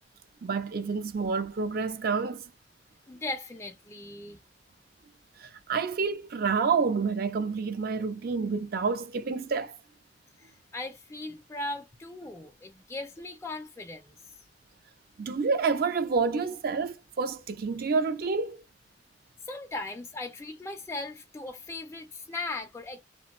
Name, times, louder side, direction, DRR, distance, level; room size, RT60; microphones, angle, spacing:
voice 1, 0.4-2.5 5.4-9.8 15.2-18.6, right 5 dB, 60° right, 0.4 m, -28 dB
voice 2, 3.1-4.4 10.4-14.4 19.4-23.0, left 2 dB, 15° left, 0.3 m, -38 dB
2.5 x 2.1 x 2.9 m
head